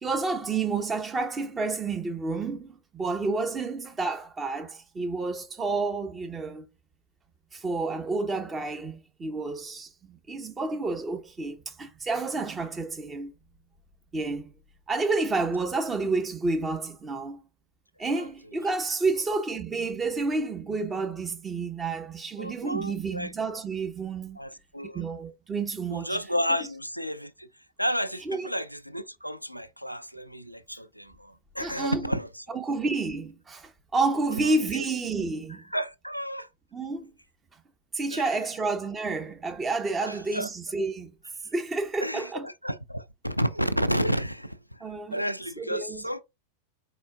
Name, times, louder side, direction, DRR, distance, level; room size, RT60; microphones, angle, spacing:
voice 1, 0.0-6.7 7.5-13.3 14.1-14.5 14.9-17.4 18.0-24.4 24.9-26.2 28.3-28.5 31.6-32.0 32.5-35.6 36.7-37.1 37.9-41.1 41.5-42.5 44.8-45.2 45.6-46.0, right 3 dB, 20° right, 0.9 m, -30 dB
voice 2, 22.4-23.3 24.4-25.1 25.9-27.5 27.8-32.6 34.4-34.8 35.5-36.5 38.1-38.3 40.0-40.5 42.0-46.2, equal, 90° left, 0.4 m, -32 dB
4.4 x 4.4 x 2.3 m
figure-of-eight pair, 90°, 0 cm